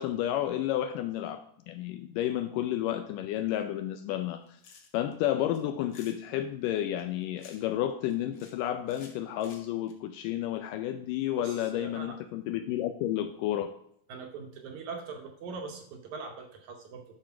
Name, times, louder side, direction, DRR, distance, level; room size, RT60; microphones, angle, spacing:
voice 1, 0.0-4.6 4.9-13.7, left 12 dB, 80° left, 8 dB, 2.0 m, -31 dB
sound 1, 4.4-5.1 5.5-6.2 7.0-7.8 8.1-8.6 8.9-9.9, left 5 dB, 60° left, 1.8 m, -53 dB
voice 2, 11.4-12.2 14.1-17.0, right 4 dB, 70° right, 4 dB, 2.0 m, -41 dB
11.5 x 4.6 x 5.8 m, 0.69 s
omnidirectional pair, 4.1 m